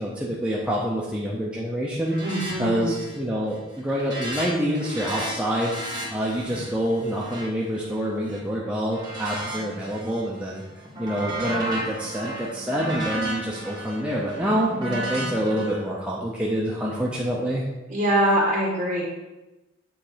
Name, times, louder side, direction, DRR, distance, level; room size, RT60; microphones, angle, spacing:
voice 1, 0.0-10.6 11.0-17.6, equal, 5° right, -5 dB, 0.7 m, -27 dB
sound 1, 2.0-2.5 2.8-3.3 3.6-8.4 8.9-10.2 10.6-15.7, right 1 dB, 20° right, 2.1 m, -34 dB
voice 2, 2.2-2.9 17.9-19.0, right 1 dB, 40° right, -7 dB, 2.6 m, -23 dB
8.6 x 3.4 x 5.0 m, 1.0 s
head